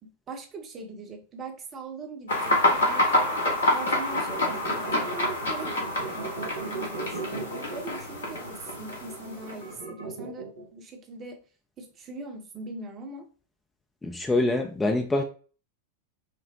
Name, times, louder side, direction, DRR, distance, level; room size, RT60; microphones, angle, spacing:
voice 1, 0.0-3.3 3.7-6.2 6.7-11.4 11.8-13.3, right 3 dB, 30° right, 0.8 m, -41 dB
sound 1, 2.3-9.8, left 1 dB, 65° left, 1.1 m, -27 dB
sound 2, 3.9-10.7, right 4 dB, 75° right, 0.8 m, -37 dB
voice 2, 14.0-15.2, left 2 dB, 10° left, 0.5 m, -25 dB
5.2 x 2.0 x 2.7 m
figure-of-eight pair, 90°, 0 cm